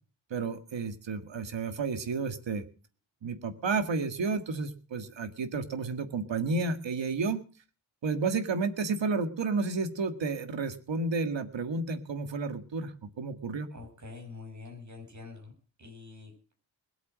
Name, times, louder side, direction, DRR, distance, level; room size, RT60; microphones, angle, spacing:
voice 1, 0.3-2.6 3.2-7.4 8.0-13.7, right 4 dB, 65° right, 9 dB, 1.9 m, -31 dB
voice 2, 13.7-15.5 15.8-16.3, left 4 dB, 35° right, 3 dB, 6.2 m, -45 dB
21.0 x 8.3 x 6.3 m, 0.37 s
wide cardioid pair, 180°, 47 cm